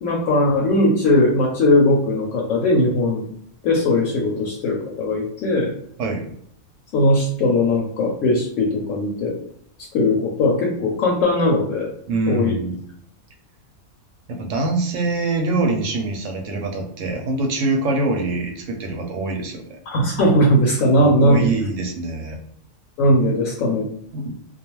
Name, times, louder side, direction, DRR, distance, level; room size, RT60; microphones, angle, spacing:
voice 1, 0.0-3.3 3.6-5.7 6.9-9.3 9.8-11.9 12.3-12.5 19.9-21.5 23.0-23.9, left 1 dB, 75° left, -1 dB, 0.9 m, -19 dB
voice 2, 12.1-12.8 14.3-19.8 21.0-22.4 24.1-24.3, right 2 dB, 70° right, 2 dB, 0.9 m, -24 dB
2.3 x 2.3 x 2.9 m, 0.66 s
omnidirectional pair, 1.4 m